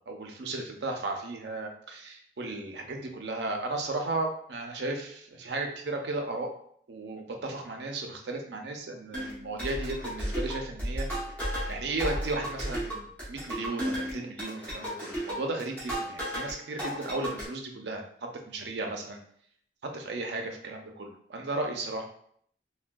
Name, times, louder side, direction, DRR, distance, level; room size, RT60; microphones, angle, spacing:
voice 1, 0.1-6.5 6.9-11.1 11.7-19.2 19.8-22.0, right 2 dB, 65° right, 2 dB, 0.5 m, -35 dB
sound 1, 9.1-16.5 16.8-17.5, equal, 10° left, 0.8 m, -34 dB
3.3 x 2.2 x 2.2 m, 0.63 s
head